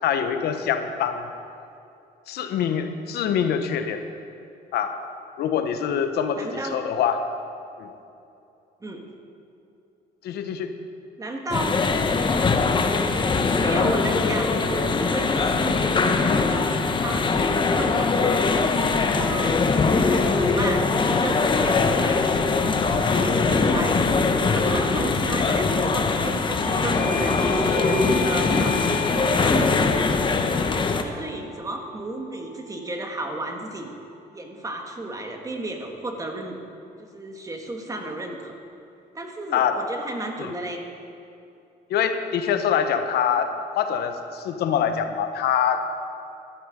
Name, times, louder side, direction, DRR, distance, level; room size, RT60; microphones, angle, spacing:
voice 1, 0.0-1.3 2.3-4.0 4.7-5.0 5.4-7.2 7.8-7.9 10.2-10.7 23.1-23.3 39.5-39.8 40.4-40.5 41.9-45.8, left 8 dB, 70° left, 7 dB, 1.0 m, -24 dB
voice 2, 6.4-6.8 8.8-9.1 11.2-12.0 13.6-16.7 17.0-18.7 19.0-19.6 19.9-22.4 22.8-24.1 24.5-30.2 30.7-34.0 34.3-36.6 37.0-38.6 39.1-40.8, right 2 dB, 20° right, 3 dB, 1.6 m, -33 dB
sound 1, 11.5-31.0, left 4 dB, 30° left, 0.9 m, -22 dB
Doorbell, 26.6-33.1, left 5 dB, 10° left, 1.7 m, -36 dB
13.0 x 12.5 x 5.2 m, 2.7 s
cardioid pair, 110°, 17 cm